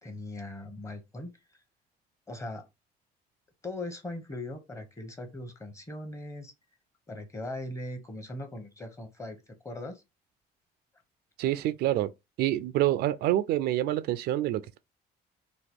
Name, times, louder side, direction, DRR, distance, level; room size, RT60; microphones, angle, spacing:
voice 1, 0.0-1.3 2.3-2.6 3.6-6.5 7.1-10.0, left 1 dB, 15° left, 0.9 m, -39 dB
voice 2, 11.4-12.1 12.4-14.8, right 14 dB, 75° right, 0.4 m, -27 dB
2.9 x 2.2 x 3.5 m
cardioid pair, 110°, 17 cm